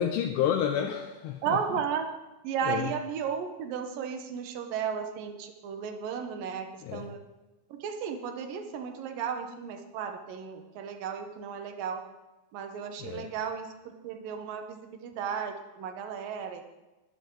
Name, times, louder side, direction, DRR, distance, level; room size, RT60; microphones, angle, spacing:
voice 1, 0.0-1.6 2.6-2.9 6.8-7.1 13.0-13.3, left 9 dB, 80° left, 4 dB, 2.8 m, -30 dB
voice 2, 1.4-2.1 2.4-7.2 7.7-12.0 12.5-13.7 14.0-16.7, right 7 dB, 65° right, 6 dB, 2.4 m, -34 dB
20.0 x 12.5 x 3.9 m, 1.1 s
omnidirectional pair, 5.3 m